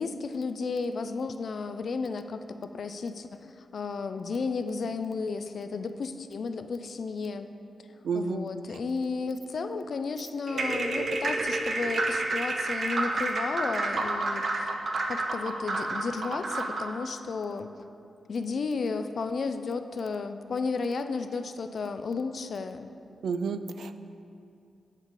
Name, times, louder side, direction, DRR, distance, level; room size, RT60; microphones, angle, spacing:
voice 1, 0.0-7.5 8.1-14.7 15.1-17.7 18.3-22.9, left 4 dB, 60° left, 9 dB, 0.4 m, -33 dB
voice 2, 8.1-8.4 23.2-24.0, right 5 dB, 85° right, 10 dB, 0.3 m, -30 dB
sound 1, 10.5-16.9, right 2 dB, 55° right, 0.7 m, -30 dB
8.1 x 7.2 x 3.7 m, 2.5 s
wide cardioid pair, 125°, 0 cm